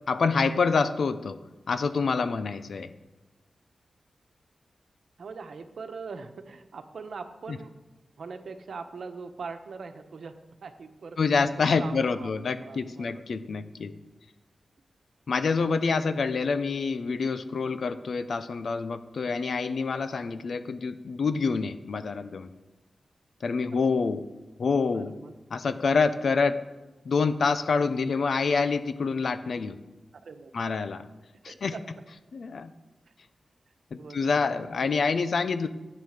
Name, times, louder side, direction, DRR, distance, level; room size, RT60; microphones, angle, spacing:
voice 1, 0.1-1.4 1.7-2.9 11.2-13.9 15.3-22.5 23.4-24.2 24.6-25.1 25.5-26.6 27.0-29.8 30.5-31.0 31.4-31.7 32.3-32.7 33.9-35.7, left 4 dB, 75° left, 11 dB, 0.8 m, -27 dB
voice 2, 5.2-7.8 8.2-13.3 23.7-23.8 24.9-25.3 30.1-30.5 31.4-31.8 33.1-33.2 33.9-35.2, right 4 dB, 75° right, 8 dB, 1.1 m, -42 dB
13.0 x 8.9 x 6.6 m, 1.1 s
wide cardioid pair, 100°, 0 cm